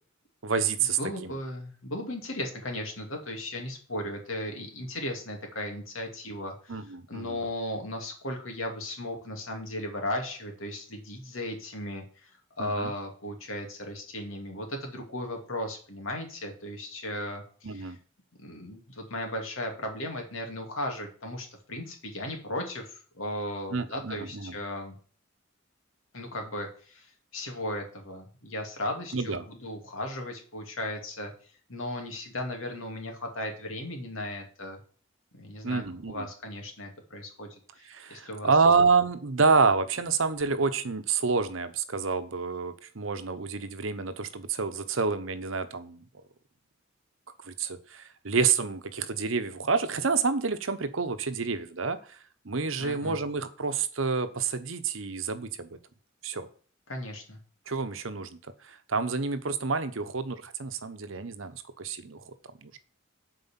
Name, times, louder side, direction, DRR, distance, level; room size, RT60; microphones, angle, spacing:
voice 1, 0.4-1.3 6.7-7.4 12.6-12.9 17.6-18.0 23.7-24.5 29.1-29.4 35.6-36.3 37.9-46.0 47.4-52.2 52.4-55.7 56.2-56.5 57.7-58.4 58.6-62.3 62.6-62.8, right 4 dB, 75° right, 10 dB, 0.9 m, -28 dB
voice 2, 1.0-6.8 7.1-18.0 18.4-24.9 26.1-27.1 27.3-31.3 31.7-34.8 35.3-38.5 52.8-53.2 56.9-57.4, left 1 dB, 85° left, 2 dB, 2.6 m, -36 dB
7.8 x 4.9 x 7.4 m, 0.43 s
head